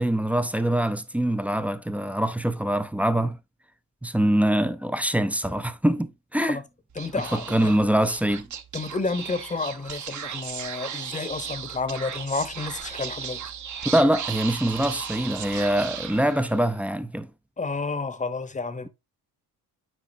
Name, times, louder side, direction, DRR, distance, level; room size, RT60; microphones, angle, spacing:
voice 1, 0.0-3.4 4.0-6.6 7.2-8.5 13.9-17.3, right 1 dB, 5° right, 0.4 m, -24 dB
Speech / Whispering, 6.9-16.7, right 8 dB, 45° right, 0.9 m, -36 dB
voice 2, 7.0-7.7 8.7-13.4 17.6-18.9, left 4 dB, 20° left, 0.8 m, -30 dB
8.6 x 4.8 x 2.6 m
cardioid pair, 110°, 41 cm